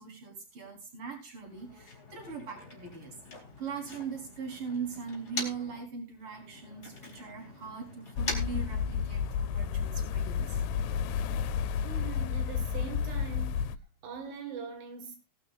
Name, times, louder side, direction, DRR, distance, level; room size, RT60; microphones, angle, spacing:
voice 1, 0.0-3.1 3.6-10.6, right 5 dB, 35° right, 4.7 m, -40 dB
Motor vehicle (road), 1.4-5.8 6.2-9.4, left 2 dB, 25° left, 4.2 m, -43 dB
sound 1, 8.2-13.8, left 7 dB, 85° left, 2.8 m, -31 dB
voice 2, 11.7-13.6 14.0-15.2, right 5 dB, 80° right, 3.8 m, -42 dB
19.5 x 12.0 x 2.5 m
omnidirectional pair, 4.7 m